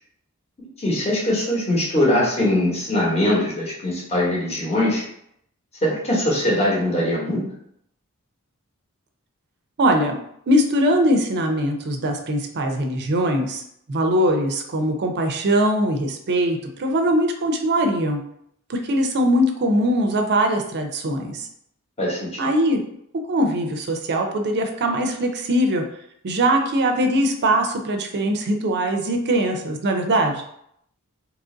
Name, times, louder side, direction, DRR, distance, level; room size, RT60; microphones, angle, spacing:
voice 1, 0.6-5.0 5.8-7.4 22.0-22.4, left 1 dB, 30° left, -4 dB, 1.0 m, -22 dB
voice 2, 9.8-10.2 10.5-13.6 13.9-18.2 18.7-21.5 22.4-22.8 23.3-25.8 26.2-30.4, right 1 dB, 50° right, 4 dB, 0.5 m, -21 dB
2.9 x 2.5 x 3.7 m, 0.73 s
head